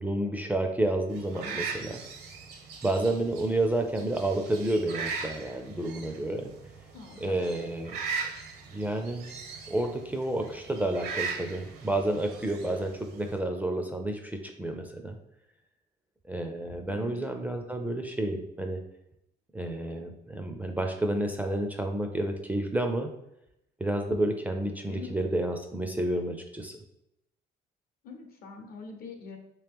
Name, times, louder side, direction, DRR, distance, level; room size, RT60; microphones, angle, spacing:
voice 1, 0.0-2.0 2.8-6.5 7.2-8.0 8.7-9.3 9.7-15.2 16.3-18.8 19.5-23.1 23.8-26.7, right 1 dB, 10° right, 4 dB, 0.4 m, -30 dB
sound 1, 1.1-13.4, right 5 dB, 75° right, 0.7 m, -39 dB
voice 2, 6.9-7.5 16.9-17.2 24.9-25.1 28.0-29.4, left 4 dB, 65° left, 3 dB, 0.8 m, -44 dB
3.0 x 2.9 x 3.5 m, 0.82 s
cardioid pair, 110°, 17 cm